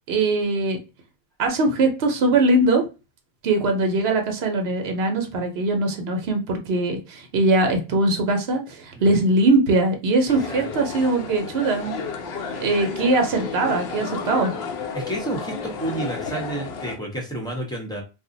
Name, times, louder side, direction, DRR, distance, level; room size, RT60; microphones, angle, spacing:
voice 1, 0.1-0.8 1.4-2.8 3.4-12.0 12.6-14.5, right 2 dB, 75° right, 4 dB, 0.9 m, -21 dB
sound 1, 10.3-17.0, left 5 dB, 75° left, 0.9 m, -32 dB
voice 2, 10.3-10.7 14.9-18.0, right 1 dB, 5° left, -1 dB, 0.7 m, -30 dB
2.5 x 2.1 x 3.8 m, 0.29 s
omnidirectional pair, 1.1 m